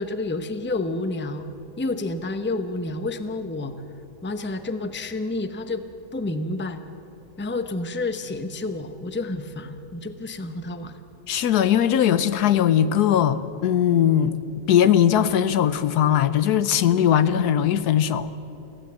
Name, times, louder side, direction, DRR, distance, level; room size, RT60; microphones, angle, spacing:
voice 1, 0.0-1.4 1.8-3.7 4.2-5.8 6.1-6.8 7.4-11.0, left 2 dB, 10° left, 0.7 m, -29 dB
voice 2, 11.3-14.4 14.7-18.3, left 10 dB, 80° left, 1.3 m, -19 dB
24.0 x 16.0 x 8.5 m
omnidirectional pair, 1.7 m